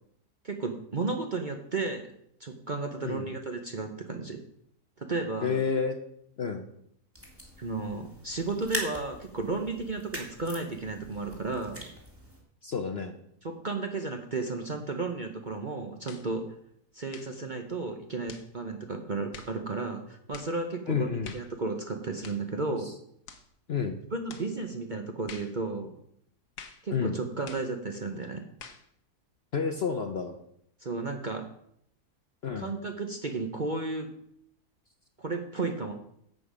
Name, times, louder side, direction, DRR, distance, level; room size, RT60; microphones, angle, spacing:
voice 1, 0.4-2.1 2.4-4.4 5.0-5.6 7.6-11.9 13.4-16.5 16.9-22.9 24.1-25.9 26.8-28.4 30.8-31.5 32.6-34.1 35.2-35.9, right 3 dB, 40° right, 4 dB, 0.8 m, -33 dB
voice 2, 5.4-6.0 6.4-6.7 12.6-13.2 20.9-21.3 22.8-22.9 23.7-24.0 26.9-27.2 29.5-30.3 32.4-32.7, left 6 dB, 50° left, 7 dB, 0.8 m, -30 dB
sound 1, 7.1-12.4, equal, 10° right, 2.2 m, -41 dB
sound 2, 16.1-16.3 17.1-17.4 18.3-18.5 19.3-19.6 20.3-20.6 21.2-21.5 22.2-22.5 23.3-23.5 24.3-24.5 25.3-25.6 26.6-26.9 27.5-27.7 28.6-28.9, left 6 dB, 75° left, 1.5 m, -47 dB
11.0 x 7.8 x 5.0 m, 0.71 s
omnidirectional pair, 1.7 m